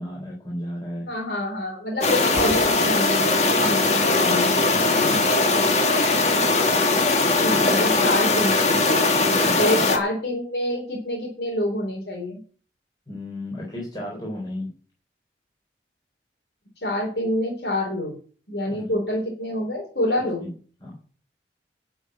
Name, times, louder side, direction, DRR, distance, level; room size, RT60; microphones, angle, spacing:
voice 1, 0.0-1.1 3.6-3.9 5.1-5.4 7.5-7.9 9.2-9.8 13.1-14.7 18.7-19.0 20.4-20.5 20.8-21.0, left 1 dB, 25° left, -3 dB, 3.9 m, -34 dB
voice 2, 1.1-3.6 4.0-5.2 7.4-9.0 9.6-12.4 16.8-18.1 18.5-20.4, left 1 dB, 75° left, -1 dB, 4.2 m, -27 dB
sound 1, 2.0-10.0, left 3 dB, 40° left, 1.9 m, -20 dB
Breathing, 2.2-4.0, equal, ahead, 3.7 m, -38 dB
12.0 x 6.4 x 8.6 m, 0.41 s
head